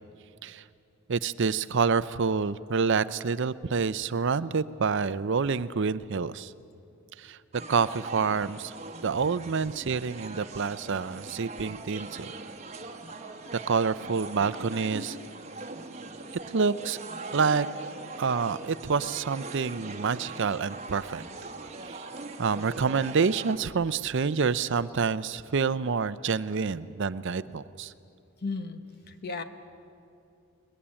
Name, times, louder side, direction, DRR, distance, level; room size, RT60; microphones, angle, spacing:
voice 1, 1.1-6.5 7.2-7.4 7.7-8.7 9.0-12.3 13.5-15.2 16.5-17.0 17.3-17.7 18.2-21.2 21.8-22.0 22.4-27.9, right 5 dB, 55° right, 15 dB, 0.5 m, -27 dB
sound 1, 7.5-23.6, right 3 dB, 30° right, 1.2 m, -41 dB
voice 2, 28.4-29.4, left 3 dB, 45° left, 9 dB, 1.1 m, -35 dB
21.5 x 21.0 x 8.8 m, 2.6 s
head